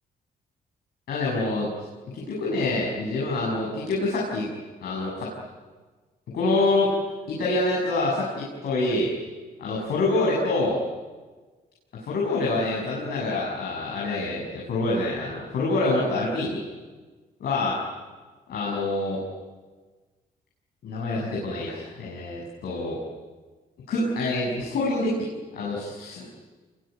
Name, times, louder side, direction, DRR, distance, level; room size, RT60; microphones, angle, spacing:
voice 1, 1.1-1.7 2.1-4.5 4.8-5.3 6.3-6.9 7.3-9.1 9.6-10.8 12.0-16.6 17.4-17.8 18.5-19.2 20.8-23.0 23.9-25.3 25.5-26.3, left 2 dB, 80° left, -3 dB, 7.1 m, -26 dB
28.0 x 22.5 x 9.4 m, 1.4 s
cardioid pair, 110°, 16 cm